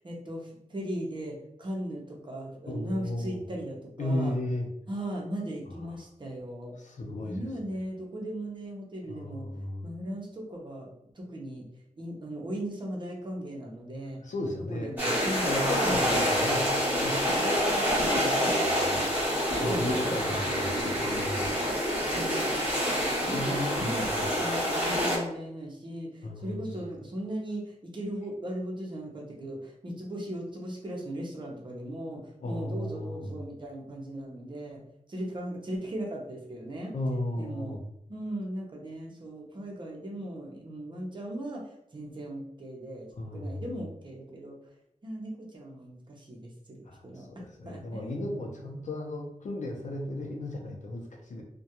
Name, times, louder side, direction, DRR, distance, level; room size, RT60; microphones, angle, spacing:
voice 1, 0.0-4.4 4.9-6.7 7.2-9.5 9.8-11.7 12.0-14.2 14.6-15.5 15.8-16.1 19.7-20.5 21.4-21.7 22.1-24.1 24.4-34.8 35.1-36.9 37.4-37.8 38.1-41.6 41.9-44.6 45.0-48.1, right 1 dB, 35° right, -2 dB, 0.7 m, -38 dB
voice 2, 2.7-3.4 4.0-4.7 6.8-7.5 9.1-9.9 14.2-14.9 15.4-19.1 19.6-21.5 23.3-24.2 26.2-26.6 32.4-33.3 36.9-37.8 43.2-43.6 46.8-51.4, left 1 dB, 65° left, 1 dB, 0.6 m, -35 dB
sound 1, 15.0-25.2, equal, 15° right, 1.1 m, -27 dB
2.3 x 2.2 x 2.9 m, 0.76 s
wide cardioid pair, 115°, 14 cm